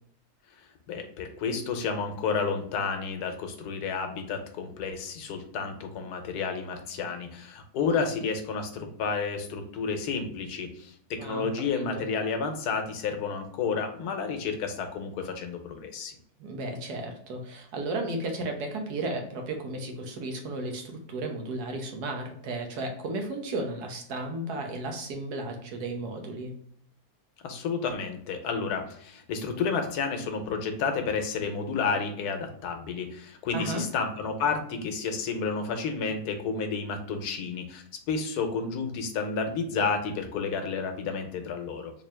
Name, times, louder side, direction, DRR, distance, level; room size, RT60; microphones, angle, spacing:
voice 1, 0.9-16.1 27.4-41.9, left 5 dB, 85° left, 6 dB, 1.2 m, -31 dB
voice 2, 11.7-12.1 16.4-26.5 33.5-33.8, right 2 dB, 85° right, 2 dB, 1.4 m, -34 dB
3.6 x 2.8 x 3.2 m, 0.64 s
omnidirectional pair, 1.6 m